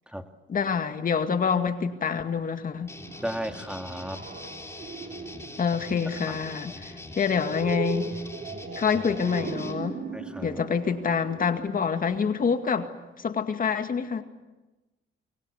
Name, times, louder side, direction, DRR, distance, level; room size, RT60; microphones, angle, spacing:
voice 1, 0.5-2.9 5.6-8.1 8.8-10.0 10.4-12.9 13.2-14.2, left 6 dB, 45° left, 8 dB, 2.1 m, -26 dB
sound 1, 2.7-12.5, right 5 dB, 50° right, 4.5 m, -39 dB
sound 2, 2.9-9.7, left 2 dB, 15° left, 3.7 m, -42 dB
voice 2, 3.2-4.2 10.1-10.6, equal, 5° right, 7 dB, 1.9 m, -34 dB
29.0 x 24.0 x 8.4 m, 1.1 s
cardioid pair, 90°, 20 cm